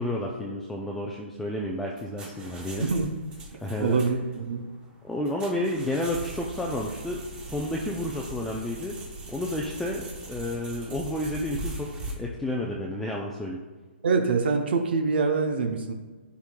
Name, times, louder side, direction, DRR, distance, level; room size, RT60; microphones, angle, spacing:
voice 1, 0.0-2.9 3.6-4.0 5.0-9.0 9.3-13.6, left 1 dB, 5° left, -2 dB, 0.4 m, -31 dB
sound 1, 1.7-12.1, right 2 dB, 15° right, 0.8 m, -40 dB
voice 2, 2.8-3.1 3.8-4.7 14.0-15.9, right 4 dB, 60° right, 4 dB, 0.7 m, -25 dB
10.0 x 4.8 x 2.2 m, 1.4 s
hypercardioid pair, 150°, 6 cm